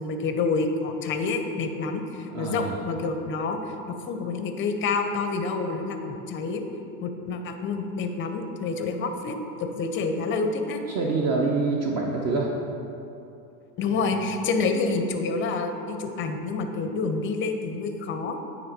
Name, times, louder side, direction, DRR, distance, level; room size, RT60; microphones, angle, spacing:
voice 1, 0.0-3.6 4.1-6.7 7.0-10.8 13.8-18.4, left 4 dB, 25° left, 6 dB, 0.5 m, -28 dB
voice 2, 2.3-2.8 10.9-12.5 13.9-14.1, right 3 dB, 35° right, -1 dB, 0.6 m, -26 dB
8.8 x 3.1 x 4.1 m, 2.7 s
hypercardioid pair, 95°, 48 cm